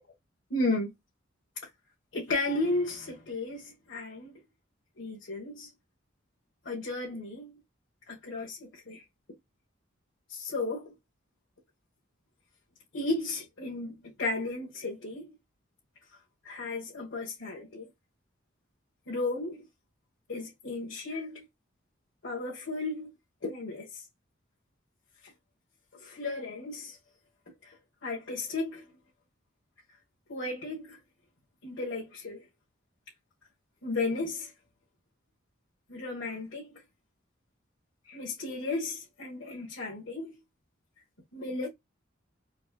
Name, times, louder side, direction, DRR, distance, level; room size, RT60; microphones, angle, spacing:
voice 1, 0.5-0.9 2.1-4.4 5.0-5.7 6.6-7.6 8.1-9.0 10.3-10.9 12.9-15.3 16.4-17.8 19.1-19.7 20.3-21.4 22.2-23.1 23.4-24.0 25.2-25.3 26.0-27.0 27.6-27.8 28.0-28.8 30.3-31.0 31.6-32.5 33.8-34.5 35.9-36.8 38.0-40.3 41.3-41.7, left 2 dB, 70° left, 1.6 m, -34 dB
4.3 x 2.2 x 2.3 m
head